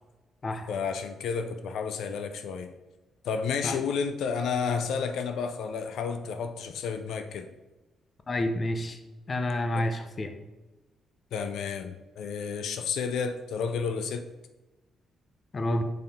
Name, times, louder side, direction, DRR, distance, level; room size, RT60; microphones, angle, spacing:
voice 1, 0.7-2.7 3.2-7.5 11.3-14.2, left 6 dB, 80° left, 8 dB, 0.5 m, -31 dB
voice 2, 8.3-9.0 9.3-10.3 15.5-15.8, left 1 dB, 30° left, 7 dB, 0.7 m, -29 dB
5.7 x 5.4 x 4.2 m, 1.1 s
cardioid pair, 135°, 0 cm